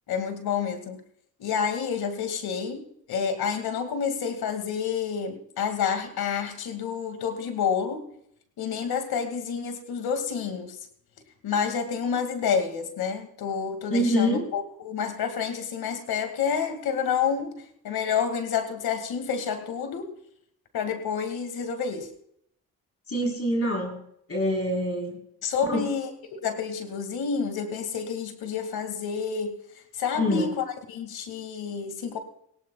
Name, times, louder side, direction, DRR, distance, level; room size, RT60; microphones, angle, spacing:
voice 1, 0.1-1.0 1.4-2.8 3.1-8.0 8.6-10.8 11.4-17.5 17.8-20.1 20.7-22.1 25.4-26.1 26.4-29.5 30.0-32.2, left 6 dB, 75° left, 8 dB, 2.1 m, -29 dB
voice 2, 13.9-14.5 23.1-24.0 24.3-25.2 25.7-25.9 30.1-30.5, equal, 40° left, 1 dB, 4.1 m, -25 dB
18.5 x 17.0 x 2.3 m, 0.71 s
supercardioid pair, 55°, 37 cm